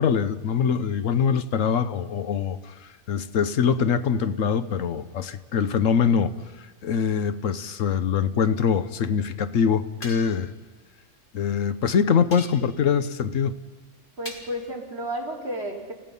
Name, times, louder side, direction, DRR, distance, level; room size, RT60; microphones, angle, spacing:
voice 1, 0.0-2.6 3.1-6.3 6.8-10.5 11.3-13.6, left 6 dB, 90° left, 1.2 m, -23 dB
sound 1, 10.0-10.5 12.3-12.9 14.3-14.7, left 1 dB, 45° left, 2.7 m, -41 dB
voice 2, 14.2-15.9, equal, 55° right, 3.8 m, -32 dB
29.5 x 16.5 x 5.5 m
omnidirectional pair, 1.3 m